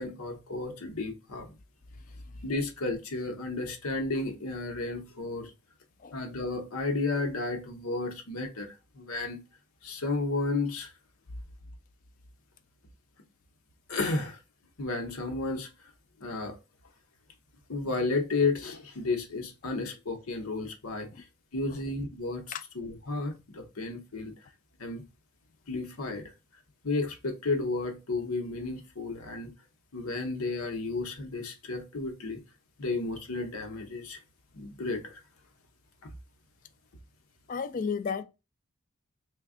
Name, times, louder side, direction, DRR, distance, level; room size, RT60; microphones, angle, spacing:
voice 1, 0.0-1.5 2.4-5.5 6.1-9.4 9.8-10.9 13.9-14.4 14.8-15.7 16.2-16.6 17.7-21.1 21.5-22.4 22.7-24.3 24.8-25.0 25.7-26.3 26.8-29.5 29.9-32.4 32.8-34.2 34.5-35.2, left 3 dB, 85° left, 0.9 m, -32 dB
voice 2, 37.5-38.2, left 6 dB, 40° left, 0.3 m, -33 dB
3.4 x 2.2 x 3.6 m
head